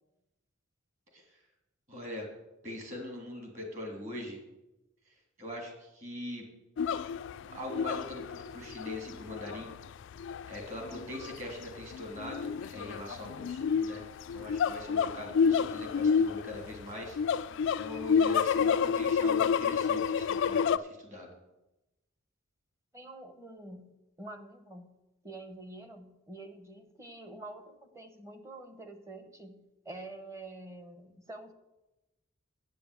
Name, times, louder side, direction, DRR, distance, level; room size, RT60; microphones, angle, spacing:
voice 1, 1.9-2.3 2.6-4.4 5.1-6.4 7.5-9.7 10.5-14.0 14.3-17.4 17.8-21.3, left 1 dB, 35° right, 1 dB, 2.9 m, -42 dB
sound 1, 6.8-20.8, left 6 dB, 55° left, 0.3 m, -29 dB
voice 2, 22.9-23.9 24.2-25.0 25.2-31.5, right 2 dB, 15° right, 7 dB, 0.9 m, -47 dB
8.4 x 6.9 x 8.2 m, 0.98 s
head